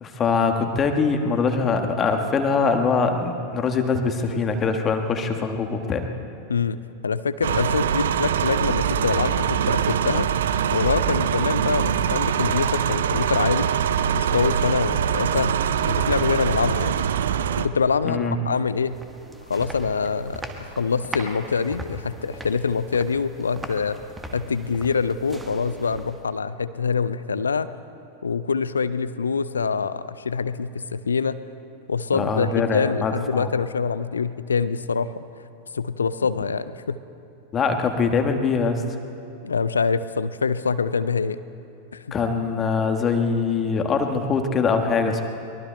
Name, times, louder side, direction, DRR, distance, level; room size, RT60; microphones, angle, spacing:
voice 1, 0.0-6.1 18.0-18.4 32.1-33.5 37.5-38.8 42.1-45.2, left 5 dB, 25° left, 5 dB, 1.4 m, -23 dB
voice 2, 7.0-10.3 10.7-13.7 14.1-15.5 15.8-17.0 17.6-19.0 19.5-24.0 24.3-27.7 28.2-31.4 31.9-35.2 35.7-37.0 39.4-41.4 41.9-42.1, left 5 dB, 75° left, 15 dB, 0.5 m, -25 dB
sound 1, 7.4-17.7, right 8 dB, 60° right, 0.5 m, -23 dB
sound 2, 18.6-26.4, right 2 dB, 10° right, 1.3 m, -39 dB
24.0 x 22.0 x 2.2 m, 2.6 s
figure-of-eight pair, 90°, 0 cm